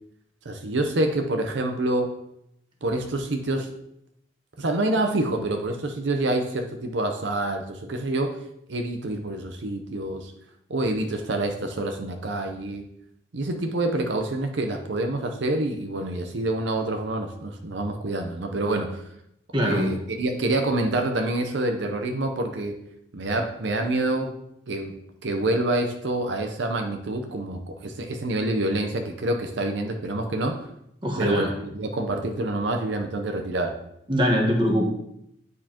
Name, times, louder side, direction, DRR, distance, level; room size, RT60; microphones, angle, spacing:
voice 1, 0.4-2.1 2.8-3.7 4.6-8.4 8.7-10.3 10.7-12.8 13.3-19.0 19.6-22.8 23.1-24.3 24.7-30.6 31.2-33.8, right 2 dB, 70° right, 4 dB, 0.7 m, -27 dB
voice 2, 19.5-19.9 31.0-31.5 34.1-34.8, equal, 25° right, 1 dB, 1.1 m, -22 dB
9.7 x 4.6 x 2.9 m, 0.77 s
head